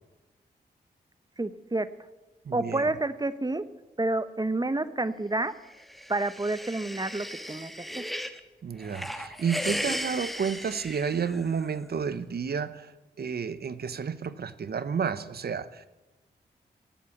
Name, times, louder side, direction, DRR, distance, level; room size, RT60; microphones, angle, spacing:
voice 1, 1.4-1.9 2.5-3.7 4.0-5.5 6.1-8.1, right 2 dB, 20° right, 14 dB, 1.0 m, -29 dB
voice 2, 2.4-2.9 8.6-15.9, right 6 dB, 60° right, 14 dB, 0.9 m, -31 dB
sound 1, 5.7-8.4 8.8-11.7, equal, ahead, 1.4 m, -36 dB
17.5 x 8.4 x 7.3 m, 1.1 s
supercardioid pair, 40°, 18 cm